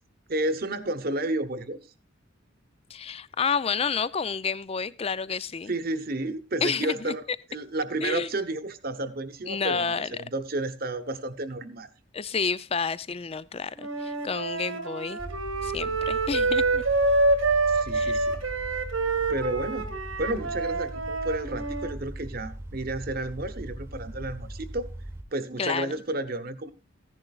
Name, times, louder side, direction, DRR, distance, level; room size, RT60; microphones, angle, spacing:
voice 1, 0.3-1.8 5.7-7.2 7.5-11.9 17.7-18.4 19.3-24.9 25.3-26.7, right 2 dB, 45° right, 1.0 m, -31 dB
voice 2, 2.9-5.7 6.6-7.1 8.0-8.3 9.5-10.2 12.1-15.2 15.6-16.8 17.9-18.2 25.6-25.9, left 5 dB, 30° left, 0.5 m, -30 dB
Wind instrument woodwind instrument, 13.8-21.9, right 3 dB, 80° right, 1.8 m, -27 dB
sound 1, 15.2-25.2, right 1 dB, 10° right, 1.1 m, -40 dB
15.0 x 11.0 x 2.4 m
head